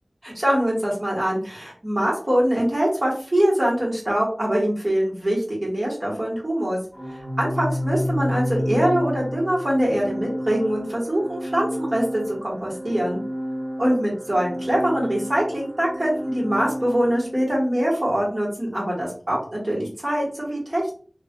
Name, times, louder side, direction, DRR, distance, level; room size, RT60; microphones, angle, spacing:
voice 1, 0.2-6.8 7.4-13.2 13.8-20.9, right 1 dB, 45° right, -4 dB, 1.4 m, -23 dB
Organ, 6.9-17.7, equal, ahead, 1.3 m, -30 dB
3.2 x 2.4 x 2.4 m, 0.42 s
wide cardioid pair, 50°, 0 cm